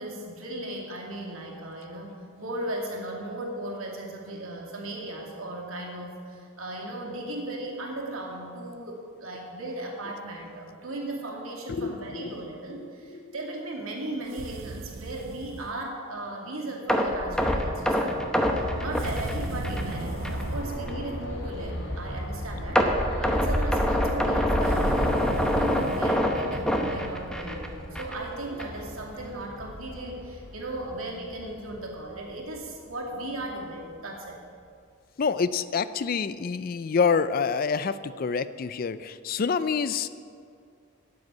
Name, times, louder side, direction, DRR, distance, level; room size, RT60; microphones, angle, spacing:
voice 1, 0.0-22.9 23.2-34.4, right 1 dB, 85° right, -1 dB, 2.5 m, -36 dB
voice 2, 11.7-12.4 12.7-13.3 35.2-40.1, left 5 dB, 45° left, 14 dB, 0.4 m, -27 dB
sound 1, 14.3-15.8 19.0-20.8 24.6-26.2, right 4 dB, 65° right, 0.5 m, -38 dB
sound 2, 16.9-19.9 20.2-20.4 20.9-21.0 22.8-27.7 28.0-28.2 28.6-28.7, equal, 5° left, 0.9 m, -25 dB
sound 3, 18.4-33.7 34.3-34.4, equal, 70° left, 1.9 m, -37 dB
9.5 x 7.9 x 9.3 m, 2.3 s
head